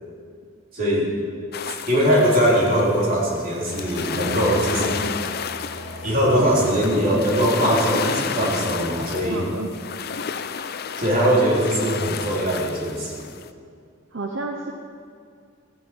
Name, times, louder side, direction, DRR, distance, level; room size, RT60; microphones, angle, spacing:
voice 1, 0.7-1.1 1.9-5.1 6.0-9.5 11.0-13.3, equal, 45° right, -5 dB, 3.6 m, -21 dB
sound 1, 1.5-13.5, left 6 dB, 50° left, 0.5 m, -32 dB
sound 2, 3.1-7.7, left 2 dB, 85° left, 2.1 m, -38 dB
voice 2, 6.2-6.7 9.2-9.7 14.1-14.7, right 2 dB, 65° right, 1 dB, 1.0 m, -30 dB
14.5 x 7.4 x 9.0 m, 2.3 s
head